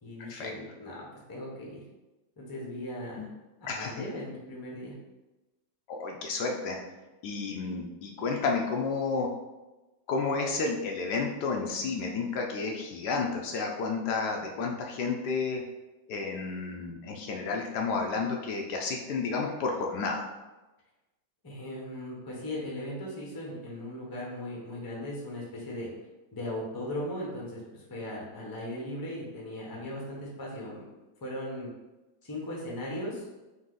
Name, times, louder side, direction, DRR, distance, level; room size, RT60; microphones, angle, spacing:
voice 1, 0.0-1.8 2.4-3.3 3.8-4.9 21.4-25.9 26.3-30.9 31.2-31.7 32.2-33.2, left 1 dB, 20° left, -3 dB, 0.6 m, -38 dB
voice 2, 3.7-4.0 5.9-6.8 7.2-9.3 10.1-15.6 16.1-20.3, left 4 dB, 75° left, 1 dB, 1.1 m, -31 dB
4.1 x 2.7 x 3.8 m, 1.1 s
omnidirectional pair, 1.9 m